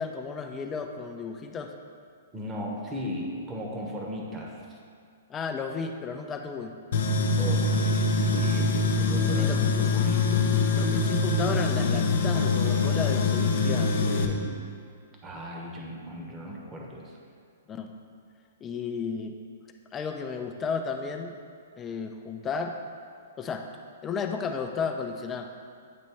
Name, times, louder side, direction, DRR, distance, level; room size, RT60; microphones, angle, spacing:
voice 1, 0.0-1.7 5.3-6.7 9.4-9.6 10.7-13.9 17.7-17.9 18.6-19.4 19.9-21.4 21.8-22.8 23.4-23.7 24.0-25.5, left 5 dB, 20° left, 5 dB, 0.5 m, -33 dB
voice 2, 2.3-4.8 7.4-10.5 14.1-14.6 15.2-17.1, equal, 20° right, -1 dB, 1.1 m, -37 dB
Tools, 6.9-14.2, left 3 dB, 60° left, 0.6 m, -24 dB
8.6 x 3.0 x 4.4 m, 2.2 s
hypercardioid pair, 120°, 0 cm